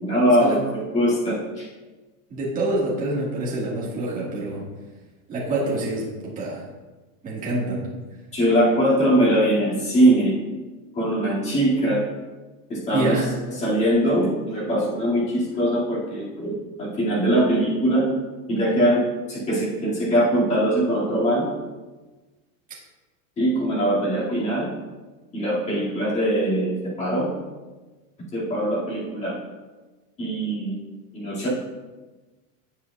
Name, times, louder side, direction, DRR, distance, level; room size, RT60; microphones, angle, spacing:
voice 1, 0.0-1.7 8.3-10.3 11.0-12.0 12.7-13.2 13.6-18.1 18.5-19.0 19.3-21.5 23.4-24.7 25.3-26.7 27.0-27.3 28.3-29.3 30.2-30.8 31.1-31.5, right 1 dB, 15° left, -7 dB, 2.1 m, -21 dB
voice 2, 2.3-4.6 5.3-6.6 7.2-7.9 12.9-13.3, right 2 dB, 15° right, -5 dB, 1.7 m, -26 dB
17.0 x 5.7 x 2.3 m, 1.2 s
supercardioid pair, 170°, 47 cm